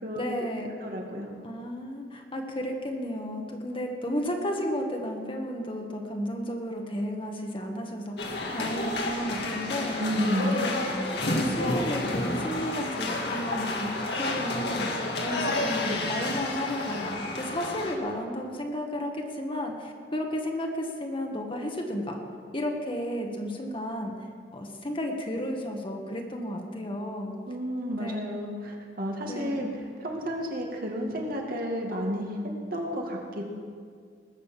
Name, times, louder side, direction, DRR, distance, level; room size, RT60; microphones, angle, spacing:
voice 1, 0.1-0.7 1.4-10.0 10.5-10.8 11.3-14.8 15.2-22.2 22.5-24.1 24.5-27.4 27.9-28.2 29.3-29.7, equal, 30° left, 2 dB, 1.5 m, -33 dB
voice 2, 0.8-1.3 10.0-10.6 27.5-29.7 30.0-32.3 32.7-33.5, equal, 55° right, 0 dB, 2.2 m, -31 dB
sound 1, 8.2-17.9, left 2 dB, 65° left, 2.0 m, -30 dB
20.0 x 6.7 x 7.5 m, 2.1 s
head